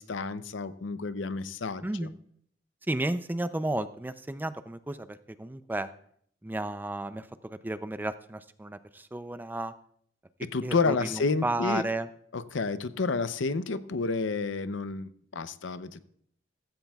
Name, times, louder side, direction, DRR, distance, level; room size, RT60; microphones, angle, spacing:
voice 1, 0.0-2.1 10.5-11.9 12.3-16.0, left 4 dB, 90° left, 13 dB, 0.6 m, -30 dB
voice 2, 1.8-2.2 2.9-5.9 6.4-9.7 10.6-12.1, right 1 dB, 10° right, 12 dB, 0.4 m, -33 dB
15.0 x 14.5 x 2.3 m, 0.64 s
head